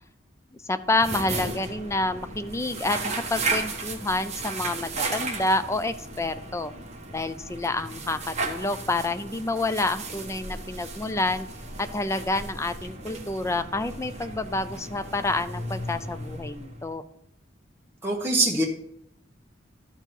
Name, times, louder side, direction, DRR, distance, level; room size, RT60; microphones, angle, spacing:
voice 1, 0.6-6.7 7.1-11.5 11.8-17.0, left 2 dB, 15° left, 11 dB, 0.4 m, -28 dB
sound 1, 0.8-17.0, right 3 dB, 35° right, 1.3 m, -35 dB
voice 2, 18.0-18.6, right 2 dB, 15° right, -4 dB, 1.3 m, -23 dB
12.5 x 4.6 x 5.4 m, 0.76 s
head